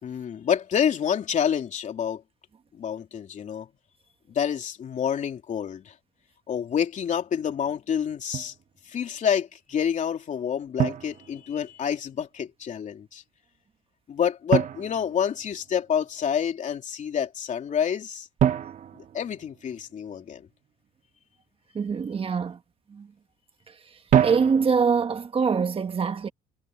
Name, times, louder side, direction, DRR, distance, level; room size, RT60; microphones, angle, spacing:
voice 1, 0.0-2.2 2.7-3.7 4.3-5.9 6.5-8.5 8.8-13.2 14.1-18.3 18.9-20.5, left 8 dB, 45° left, 3.1 m, -28 dB
Drum, 8.3-8.6 10.8-11.9 14.5-15.9 18.4-20.1 24.1-25.1, right 9 dB, 50° right, 1.6 m, -27 dB
voice 2, 21.7-22.6 22.9-23.1 24.2-26.3, right 5 dB, 35° right, 1.5 m, -24 dB
cardioid pair, 110°, 17 cm